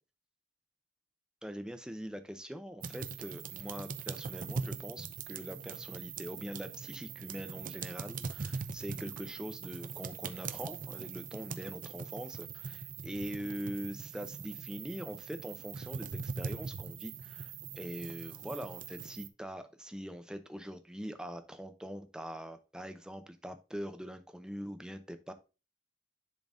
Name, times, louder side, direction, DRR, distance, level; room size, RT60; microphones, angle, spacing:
voice 1, 1.4-25.3, equal, 5° right, 9 dB, 0.6 m, -43 dB
sound 1, 2.8-19.3, right 5 dB, 45° right, 0.6 m, -42 dB
10.5 x 3.9 x 2.5 m, 0.30 s
head